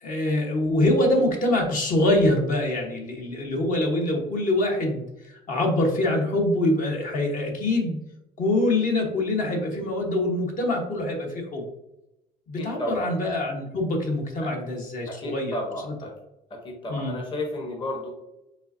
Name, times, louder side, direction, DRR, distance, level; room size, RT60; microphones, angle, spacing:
voice 1, 0.0-8.0 8.4-11.7 12.5-15.6 16.9-17.2, left 1 dB, 50° left, 1 dB, 1.2 m, -24 dB
voice 2, 12.6-13.1 15.1-16.1 16.5-18.1, left 1 dB, 30° left, 0 dB, 1.1 m, -33 dB
5.4 x 3.4 x 2.7 m, 0.90 s
cardioid pair, 110°, 17 cm